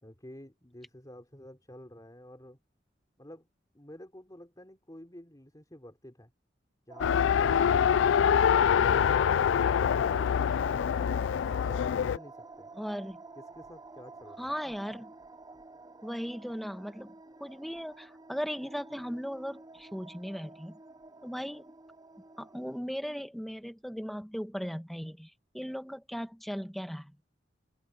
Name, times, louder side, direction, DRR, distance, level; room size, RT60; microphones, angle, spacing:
voice 1, 0.0-2.6 3.2-3.5 3.7-6.3 11.6-12.7 13.4-14.5, left 1 dB, 20° left, 3.9 m, -50 dB
sound 1, 6.9-22.8, right 3 dB, 20° right, 0.6 m, -50 dB
Race car auto racing, 7.0-12.2, left 8 dB, 90° left, 0.3 m, -25 dB
voice 2, 12.8-13.2 14.4-15.1 16.0-17.1 17.4-20.8 21.2-21.8 22.4-27.1, equal, ahead, 1.3 m, -37 dB
head